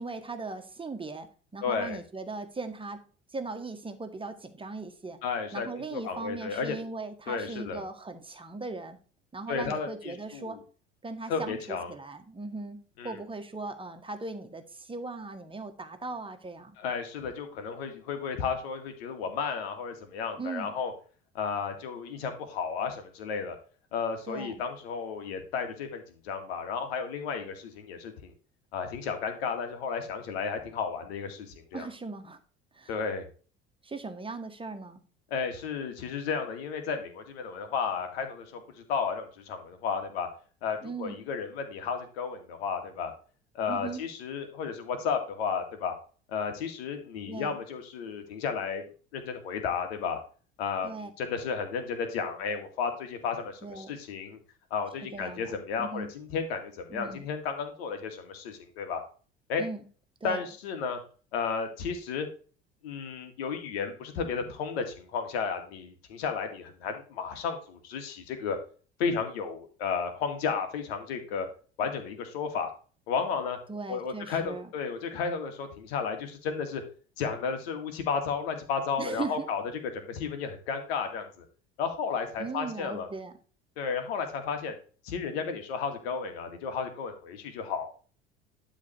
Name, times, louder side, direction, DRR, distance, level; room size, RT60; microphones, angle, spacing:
voice 1, 0.0-3.0 3.3-5.2 5.5-9.0 9.3-10.6 11.0-16.8 20.4-20.7 24.3-24.6 31.7-32.4 32.7-32.9 33.8-35.0 40.8-41.2 43.7-44.1 47.3-47.6 50.8-51.1 53.6-53.9 55.1-55.5 55.8-56.1 56.9-57.3 59.6-59.8 60.2-60.5 73.7-74.7 79.0-79.5 82.4-83.3, right 3 dB, 15° right, 7 dB, 1.7 m, -38 dB
voice 2, 1.6-2.0 5.2-6.8 7.3-7.8 9.5-10.6 11.3-11.9 13.0-13.2 16.8-20.9 21.3-23.6 23.9-28.3 28.7-31.9 32.9-33.2 35.3-40.3 40.6-43.1 43.5-45.9 46.3-48.8 49.1-50.2 50.6-54.4 54.7-59.0 59.5-59.6 60.2-61.0 61.3-62.3 62.8-68.6 69.0-71.5 71.8-72.7 73.1-73.6 73.9-76.8 77.2-79.6 79.9-81.3 81.8-83.1 83.8-84.7 85.0-87.9, left 6 dB, 65° left, 6 dB, 2.1 m, -33 dB
11.5 x 4.0 x 6.3 m, 0.39 s
figure-of-eight pair, 65°, 33 cm